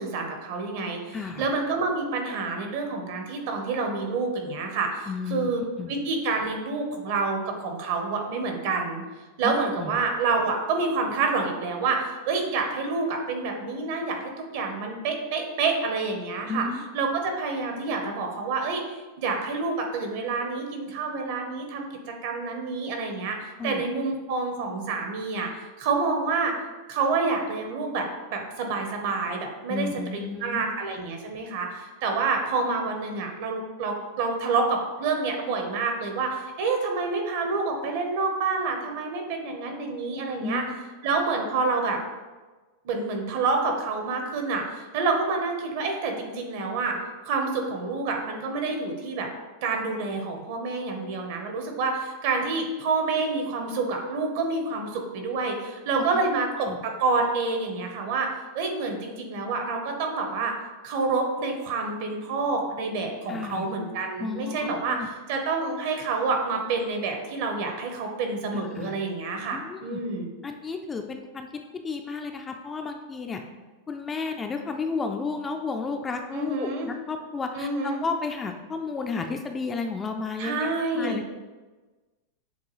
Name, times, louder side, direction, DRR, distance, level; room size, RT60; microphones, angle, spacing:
voice 1, 0.0-5.6 5.9-9.0 9.4-16.7 16.9-18.8 19.2-21.8 22.2-26.6 26.9-29.9 30.1-40.6 41.0-42.0 42.8-47.0 47.3-49.3 49.6-58.3 58.5-60.5 60.8-70.3 76.3-76.9 77.6-78.0 80.4-81.2, right 4 dB, 60° right, 3 dB, 0.9 m, -28 dB
voice 2, 1.1-1.5 5.1-5.5 5.8-5.9 9.4-9.5 9.8-10.0 16.5-16.8 23.6-23.8 29.7-30.6 40.4-40.7 56.6-56.8 63.3-63.7 64.2-64.6 64.9-65.1 68.7-69.0 69.5-70.0 70.4-71.5 71.7-73.4 73.9-80.7 80.9-81.2, left 4 dB, 15° left, 5 dB, 0.3 m, -32 dB
7.0 x 2.3 x 3.1 m, 1.2 s
supercardioid pair, 140°, 0 cm